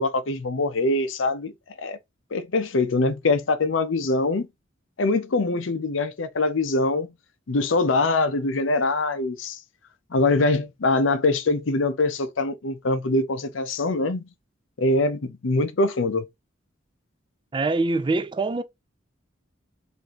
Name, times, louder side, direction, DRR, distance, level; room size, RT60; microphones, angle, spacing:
voice 1, 0.0-1.5 1.8-2.0 2.3-4.5 5.0-7.1 7.5-9.6 10.1-14.2 14.8-16.3, left 2 dB, 90° left, 0.7 m, -23 dB
voice 2, 17.5-18.6, right 3 dB, 25° right, 0.3 m, -24 dB
4.2 x 2.7 x 3.0 m
head